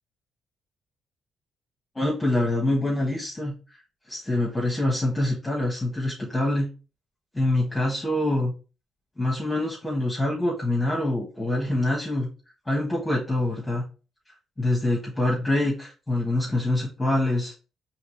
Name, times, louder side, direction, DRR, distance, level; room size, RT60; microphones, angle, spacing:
voice 1, 1.9-3.5 4.1-6.7 7.3-8.5 9.2-12.3 12.7-13.8 14.6-17.5, left 1 dB, 10° left, -4 dB, 1.3 m, -25 dB
4.7 x 3.0 x 3.2 m, 0.33 s
cardioid pair, 90°, 0 cm